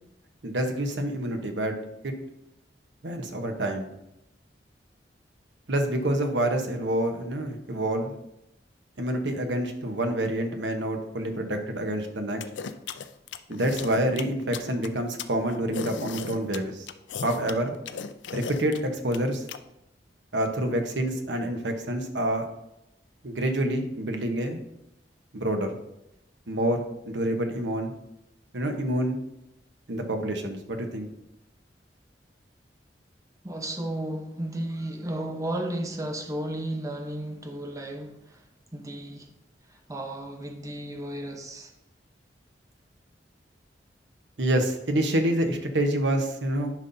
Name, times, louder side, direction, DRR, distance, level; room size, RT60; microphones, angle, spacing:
voice 1, 0.4-1.7 2.0-2.1 3.0-3.9 5.7-8.1 9.0-12.4 13.5-16.9 17.2-17.7 18.3-19.4 20.3-22.4 23.2-24.6 25.3-25.8 26.5-27.9 28.5-29.2 29.9-31.1 44.4-46.7, right 1 dB, 85° right, 1.1 m, -27 dB
sound 1, 12.4-19.6, left 6 dB, 90° left, 0.5 m, -36 dB
voice 2, 33.4-38.4 38.7-39.3 39.7-41.7, right 1 dB, 20° right, 0.9 m, -34 dB
10.5 x 5.5 x 2.7 m
head